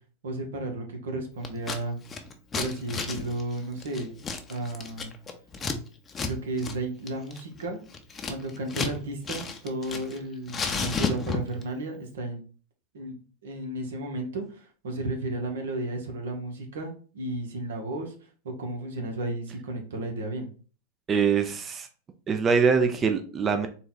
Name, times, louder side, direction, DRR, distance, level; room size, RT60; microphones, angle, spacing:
voice 1, 0.2-2.0 2.5-4.1 4.5-5.1 6.2-7.8 8.3-12.4 12.9-18.1 18.4-20.5, right 2 dB, 85° right, 3 dB, 1.1 m, -33 dB
Scissors, 1.4-1.8 2.1-5.8 6.1-6.3 6.6-6.8 7.1-9.0 9.2-10.2 10.5-11.6, left 4 dB, 25° left, 0.6 m, -32 dB
voice 2, 21.1-21.9 22.3-23.7, right 5 dB, 25° right, 7 dB, 0.5 m, -23 dB
3.9 x 2.3 x 4.0 m, 0.39 s
hypercardioid pair, 115°, 0 cm